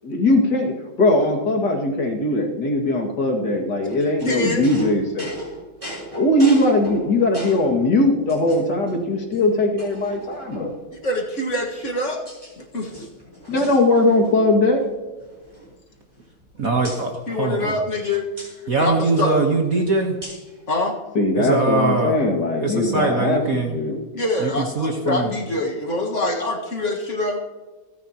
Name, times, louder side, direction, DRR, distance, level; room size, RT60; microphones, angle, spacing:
voice 1, 0.0-0.7 1.0-5.3 6.1-10.7 13.5-14.8 21.2-24.0, left 2 dB, 55° left, 1 dB, 2.6 m, -20 dB
voice 2, 4.2-4.7 11.0-12.2 12.6-12.9 17.3-18.3 18.6-19.3 20.7-20.9 24.1-27.4, left 1 dB, 40° left, 1 dB, 1.8 m, -25 dB
sound 1, 4.2-7.8 8.3-8.9 9.3-9.4 9.8-10.8 11.6-12.5 12.8-14.4 14.6-14.9 15.2-16.5 16.8-17.1 18.4-18.5 20.2-20.5, equal, 15° right, 4.8 m, -37 dB
voice 3, 16.6-17.8 18.7-20.2 21.3-22.2 22.6-23.7 24.4-25.3, right 3 dB, 50° right, 2 dB, 1.5 m, -22 dB
28.5 x 10.0 x 2.9 m, 1.3 s
omnidirectional pair, 2.2 m